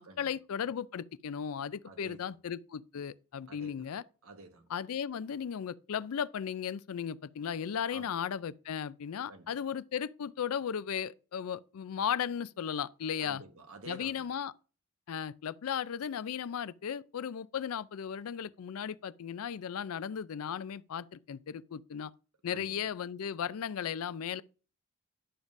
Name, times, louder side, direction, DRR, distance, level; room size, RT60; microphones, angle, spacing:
voice 1, 0.0-4.0 4.7-13.4 13.9-14.5 15.1-22.1 22.4-24.4, left 8 dB, 75° left, 0.4 m, -36 dB
voice 2, 1.8-2.3 3.5-3.8 4.2-4.7 7.9-8.1 9.3-9.5 13.2-14.3 22.5-22.7, right 3 dB, 70° right, 1.3 m, -49 dB
11.0 x 7.2 x 2.6 m
head